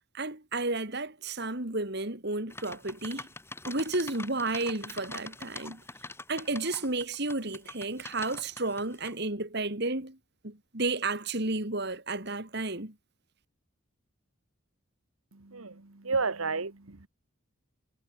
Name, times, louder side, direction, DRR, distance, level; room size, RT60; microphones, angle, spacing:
voice 1, 0.1-3.3 3.7-5.8 6.3-10.2 10.4-12.9, right 2 dB, 50° right, 3.2 m, -32 dB
sound 1, 2.5-9.1, left 2 dB, 10° left, 6.0 m, -44 dB
voice 2, 15.3-17.1, right 4 dB, 85° right, 1.6 m, -32 dB
head